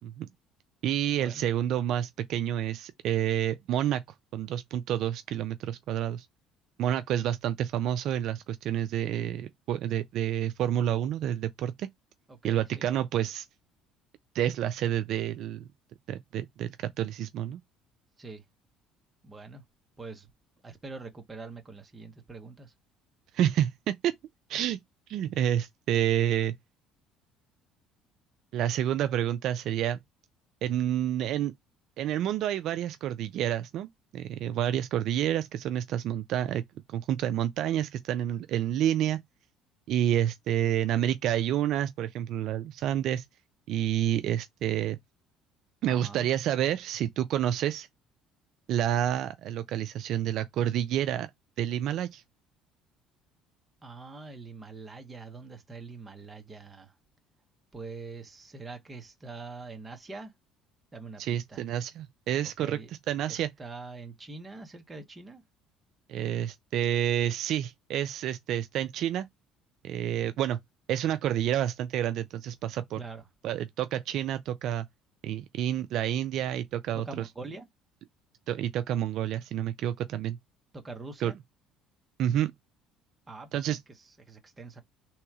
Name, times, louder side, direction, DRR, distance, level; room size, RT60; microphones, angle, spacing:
voice 1, 0.8-4.0 4.3-6.3 6.8-11.9 12.4-13.5 14.3-15.6 16.1-16.7 17.0-17.6 23.3-24.2 24.5-24.8 25.1-26.5 28.5-30.0 30.6-31.5 32.0-36.6 36.9-39.2 39.9-43.2 43.7-45.0 45.8-47.9 48.7-51.3 51.6-52.2 61.2-62.8 63.1-63.5 66.1-69.3 69.8-70.6 70.9-73.0 73.4-74.9 75.2-77.0 78.5-80.4 81.2-81.3 82.2-82.5 83.5-83.8, right 11 dB, 55° right, 0.3 m, -29 dB
voice 2, 12.3-12.9 18.2-18.4 19.2-19.6 20.0-20.3 20.6-22.7 45.8-46.3 53.8-57.0 57.7-60.3 60.9-61.6 62.4-62.9 63.3-65.4 73.0-73.3 76.9-77.7 80.7-81.4 83.3-84.8, right 3 dB, 15° right, 0.9 m, -44 dB
3.5 x 2.9 x 4.7 m
cardioid pair, 155°, 0 cm